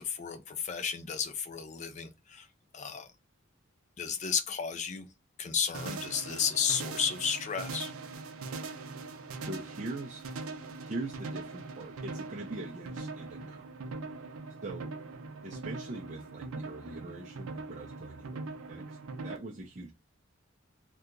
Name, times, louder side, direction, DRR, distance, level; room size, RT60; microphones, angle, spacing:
voice 1, 0.0-2.5 2.7-3.1 4.0-5.0 5.4-7.9, left 6 dB, 35° left, 0.4 m, -33 dB
sound 1, 5.7-19.4, right 3 dB, 85° right, 0.5 m, -41 dB
voice 2, 9.4-10.2 10.8-13.7 14.6-14.9 15.4-19.0 19.2-19.9, right 2 dB, 35° right, 0.4 m, -42 dB
2.8 x 2.2 x 3.7 m
head